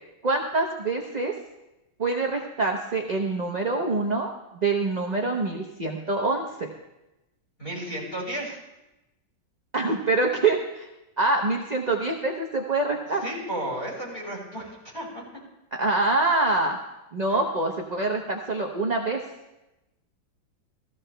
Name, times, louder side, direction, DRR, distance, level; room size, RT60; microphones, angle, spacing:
voice 1, 0.2-1.3 2.0-6.7 9.7-10.9 11.2-13.2 15.8-16.8 17.1-19.2, right 3 dB, 35° right, 1 dB, 0.6 m, -25 dB
voice 2, 7.6-8.6 13.2-15.2 17.3-17.4, right 1 dB, 25° left, -6 dB, 5.9 m, -33 dB
16.5 x 14.5 x 3.3 m, 0.96 s
omnidirectional pair, 2.1 m